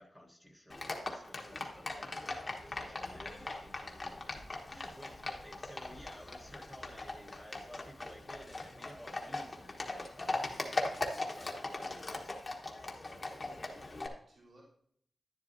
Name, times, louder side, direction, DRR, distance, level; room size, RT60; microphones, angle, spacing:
voice 1, 0.0-2.2 2.6-12.5 12.9-13.2, equal, 5° right, -1 dB, 1.2 m, -54 dB
Livestock farm animals working animals, 0.7-14.1, left 2 dB, 30° left, 1.1 m, -40 dB
voice 2, 1.8-2.4 13.9-14.6, right 1 dB, 60° right, -5 dB, 3.1 m, -63 dB
11.0 x 10.5 x 2.6 m, 0.66 s
wide cardioid pair, 170°, 0 cm